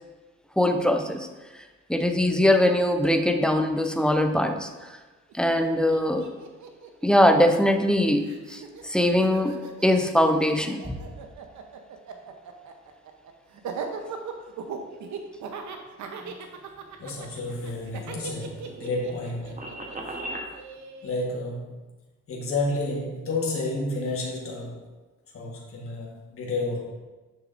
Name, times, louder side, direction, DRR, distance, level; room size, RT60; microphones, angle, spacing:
voice 1, 0.6-1.3 1.9-4.7 5.3-6.3 7.0-11.0, left 1 dB, 5° left, 6 dB, 0.5 m, -22 dB
Laughter, 5.3-5.4 5.6-7.9 8.2-21.3, right 6 dB, 70° right, 0.8 m, -39 dB
voice 2, 17.0-19.6 21.0-21.7 22.3-24.8 25.3-26.9, left 2 dB, 45° left, -3 dB, 1.4 m, -30 dB
sound 1, 17.4-20.5, right 1 dB, 25° right, 1.0 m, -38 dB
6.6 x 6.5 x 2.5 m, 1.2 s
cardioid pair, 90°, 30 cm